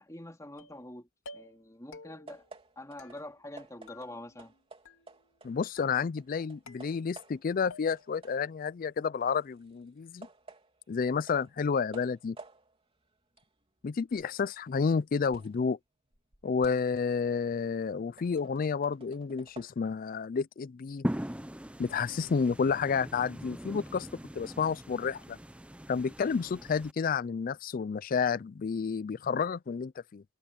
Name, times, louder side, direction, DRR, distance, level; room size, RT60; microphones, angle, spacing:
voice 1, 0.0-2.4 2.8-4.5, left 1 dB, 15° left, 3.8 m, -45 dB
sound 1, 0.6-0.9 1.3-1.7 1.9-2.4 3.0-3.6 3.9-4.5 4.9-5.4 5.8-6.3 6.7-7.4 7.7-8.2, left 2 dB, 80° left, 2.5 m, -52 dB
sound 2, 2.3-5.9 6.2-7.6 7.9-15.7 16.0-19.7, right 3 dB, 30° right, 3.2 m, -54 dB
voice 2, 5.4-10.3 10.9-12.4 13.8-15.8 16.4-21.1 21.8-24.1 24.3-25.4 25.9-30.2, left 5 dB, 45° left, 0.4 m, -30 dB
sound 3, 21.0-26.9, equal, 5° right, 0.8 m, -40 dB
head